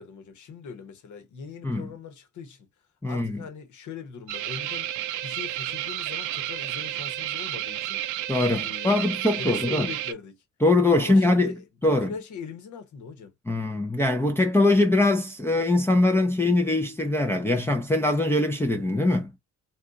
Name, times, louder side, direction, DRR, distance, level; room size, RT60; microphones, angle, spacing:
voice 1, 0.0-2.7 3.0-4.9 5.2-8.0 8.6-10.4 11.0-13.3, left 6 dB, 75° left, 1.1 m, -40 dB
voice 2, 3.0-3.4 8.3-9.9 10.6-11.6 11.8-12.1 13.5-19.3, left 2 dB, 10° left, 0.5 m, -22 dB
sound 1, 4.3-10.1, right 13 dB, 80° right, 0.5 m, -31 dB
2.7 x 2.4 x 3.6 m
cardioid pair, 90°, 30 cm